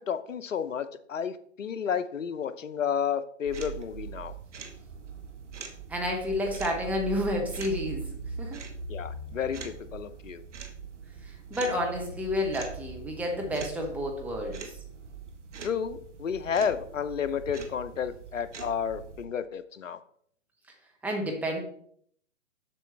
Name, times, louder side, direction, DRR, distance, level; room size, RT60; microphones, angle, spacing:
voice 1, 0.0-4.3 8.9-10.4 15.6-20.0, left 7 dB, 75° left, 12 dB, 0.8 m, -31 dB
sound 1, 3.4-19.3, right 5 dB, 65° right, 1.3 m, -41 dB
voice 2, 5.9-8.1 8.4-8.6 11.2-14.6 21.0-21.6, left 1 dB, 5° right, 0 dB, 0.7 m, -30 dB
7.5 x 6.2 x 3.3 m, 0.63 s
figure-of-eight pair, 130°, 38 cm